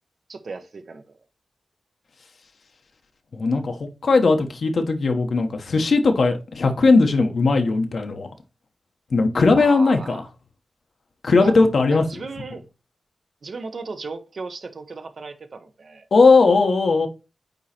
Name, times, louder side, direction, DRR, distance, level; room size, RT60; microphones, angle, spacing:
voice 1, 0.3-1.2 9.6-10.3 11.4-11.5 11.9-12.6 13.4-16.1, right 4 dB, 55° right, 1.0 m, -35 dB
voice 2, 3.3-8.3 9.1-10.2 11.2-12.0 16.1-17.1, left 3 dB, 65° left, 1.1 m, -18 dB
9.2 x 3.1 x 4.3 m
wide cardioid pair, 140°, 0 cm